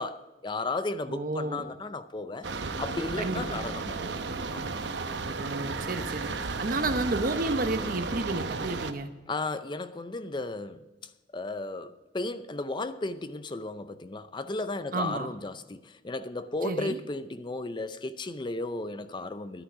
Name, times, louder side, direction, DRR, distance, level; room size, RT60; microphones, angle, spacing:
voice 1, 0.0-2.5 2.8-4.2 4.5-4.7 9.3-10.8 11.3-19.6, left 2 dB, 25° left, 0.5 m, -34 dB
voice 2, 1.1-1.7 3.2-3.6 5.2-6.3 6.6-9.1 14.9-15.3 16.6-17.0, right 2 dB, 50° right, 1.0 m, -31 dB
sound 1, 2.4-8.9, right 4 dB, 80° right, 0.9 m, -33 dB
11.0 x 9.8 x 6.0 m
head